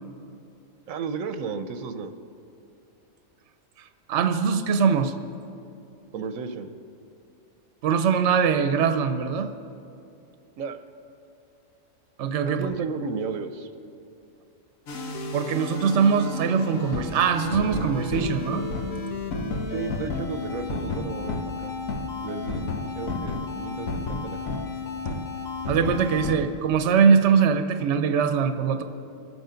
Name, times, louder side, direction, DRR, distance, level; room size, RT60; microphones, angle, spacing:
voice 1, 0.9-2.1 6.1-6.7 10.6-10.8 12.4-13.7 18.5-18.6 19.7-21.7 22.2-24.4, right 5 dB, 85° right, 9 dB, 1.1 m, -33 dB
voice 2, 4.1-5.1 7.8-9.5 12.2-12.7 15.3-18.7 25.7-28.8, right 6 dB, 65° right, 8 dB, 1.0 m, -22 dB
sound 1, 14.9-26.4, left 3 dB, 85° left, 1.5 m, -31 dB
24.5 x 8.2 x 5.1 m, 2.6 s
omnidirectional pair, 1.4 m